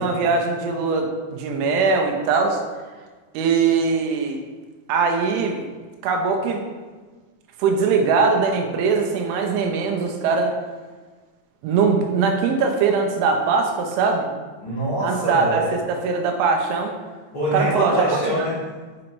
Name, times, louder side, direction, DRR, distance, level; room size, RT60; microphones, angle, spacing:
voice 1, 0.0-2.6 3.3-4.4 4.9-5.6 6.0-6.6 7.6-10.6 11.6-14.3 15.0-16.9 17.5-18.1, right 5 dB, 85° right, 3 dB, 3.2 m, -21 dB
voice 2, 14.6-15.8 17.3-18.7, equal, 75° left, -11 dB, 1.1 m, -24 dB
6.2 x 6.2 x 3.1 m, 1.4 s
omnidirectional pair, 5.3 m